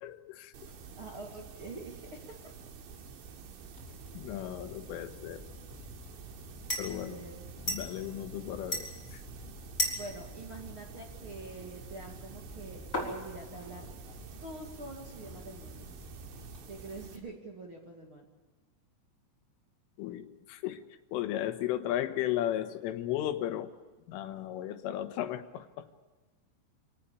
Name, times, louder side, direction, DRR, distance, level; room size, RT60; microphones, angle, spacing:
voice 1, 0.0-0.7 4.2-5.4 6.8-7.2 7.7-9.2 20.0-20.8 21.1-23.7 24.1-25.9, left 12 dB, 80° left, 8 dB, 3.8 m, -35 dB
sound 1, 0.5-17.2, right 5 dB, 70° right, 4.4 m, -49 dB
voice 2, 1.0-2.3 6.8-7.4 9.9-13.9 14.4-15.9 16.7-18.2, right 2 dB, 40° right, 1 dB, 2.1 m, -45 dB
sound 2, 3.8-16.6, left 1 dB, 15° left, 5.1 m, -41 dB
26.0 x 19.0 x 7.0 m, 1.3 s
omnidirectional pair, 5.7 m